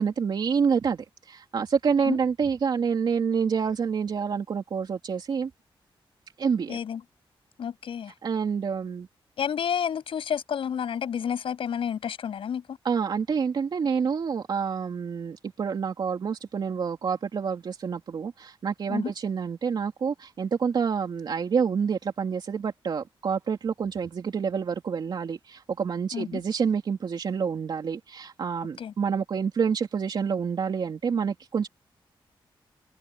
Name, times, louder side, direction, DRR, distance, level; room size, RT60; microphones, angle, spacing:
voice 1, 0.0-5.5 6.4-6.8 8.2-9.1 12.8-31.7, right 6 dB, 55° right, 3.3 m, -28 dB
voice 2, 6.7-7.0 7.6-8.1 9.4-12.8 18.9-19.1 26.1-26.4 28.8-28.9, left 8 dB, 75° left, 8.0 m, -30 dB
wide cardioid pair, 170°, 9 cm